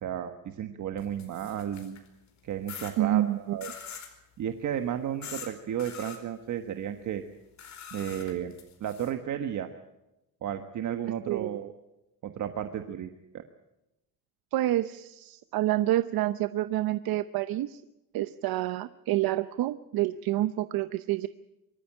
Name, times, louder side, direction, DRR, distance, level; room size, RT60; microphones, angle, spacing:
voice 1, 0.0-2.0 2.4-3.7 4.4-7.2 7.9-8.5 8.8-9.7 10.4-11.7 12.2-13.1 13.3-13.4, right 10 dB, 50° right, 7 dB, 1.4 m, -33 dB
sound 1, 1.0-2.1 2.7-2.9 3.6-4.1 5.2-5.5 5.8-6.2 7.6-9.1, left 7 dB, 50° left, 4.4 m, -43 dB
voice 2, 3.0-3.6 11.3-11.5 14.5-17.8 18.1-21.3, right 14 dB, 70° right, 12 dB, 0.8 m, -28 dB
24.5 x 14.0 x 10.0 m, 0.94 s
cardioid pair, 145°, 37 cm